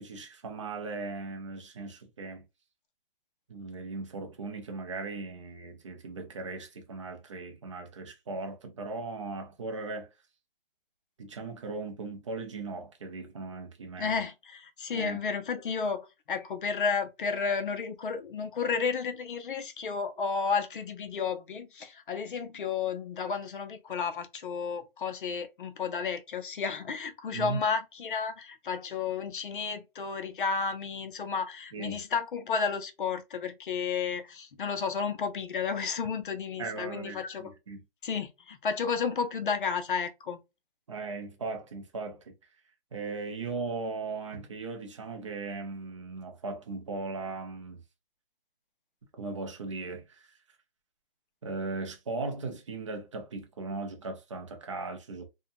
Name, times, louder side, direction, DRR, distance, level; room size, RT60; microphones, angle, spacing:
voice 1, 0.0-2.4 3.5-10.1 11.2-14.2 14.9-15.2 27.3-27.6 31.7-32.0 36.6-37.8 40.9-42.3 42.9-47.8 49.2-50.3 51.4-55.3, right 3 dB, 30° right, 0.5 m, -38 dB
voice 2, 14.0-37.5 38.0-40.4, left 5 dB, 60° left, 0.6 m, -32 dB
2.7 x 2.2 x 2.6 m
hypercardioid pair, 165°, 29 cm